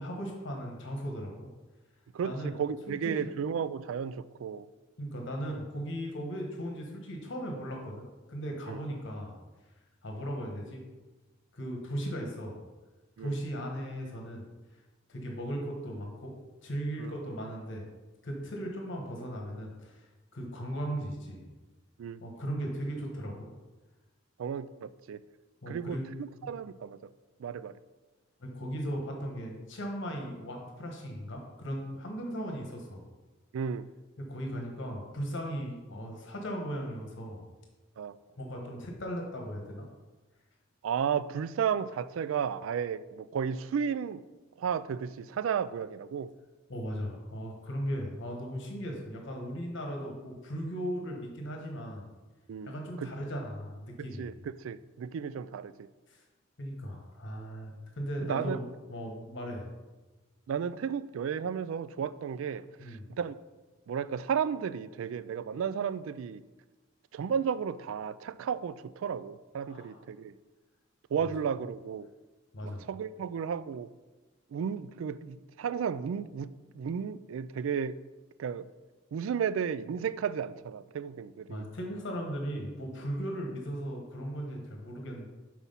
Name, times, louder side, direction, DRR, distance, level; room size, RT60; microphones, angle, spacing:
voice 1, 0.0-1.5 2.2-2.5 2.9-3.3 5.0-9.4 10.0-10.8 11.5-12.6 13.2-14.4 15.1-16.4 16.6-17.8 18.2-21.4 22.2-23.5 25.6-26.1 28.4-33.0 34.2-37.4 38.4-39.9 46.7-52.0 52.6-54.3 56.1-56.2 56.6-59.7 62.8-63.1 69.6-70.0 72.5-72.8 81.5-85.3, equal, 65° left, 1 dB, 1.2 m, -37 dB
voice 2, 2.1-4.7 8.7-8.8 13.2-13.4 17.0-17.1 22.0-22.2 24.4-25.2 25.7-27.0 27.4-27.7 33.5-33.9 38.0-38.2 40.8-44.2 44.6-46.3 52.5-53.1 54.0-54.3 54.6-55.7 58.2-58.6 60.5-63.4 63.9-66.4 67.1-70.4 71.1-72.1 72.6-73.9 74.5-78.0 78.4-78.7 79.1-81.7, right 7 dB, 80° right, 16 dB, 0.3 m, -33 dB
5.7 x 4.7 x 5.4 m, 1.2 s
head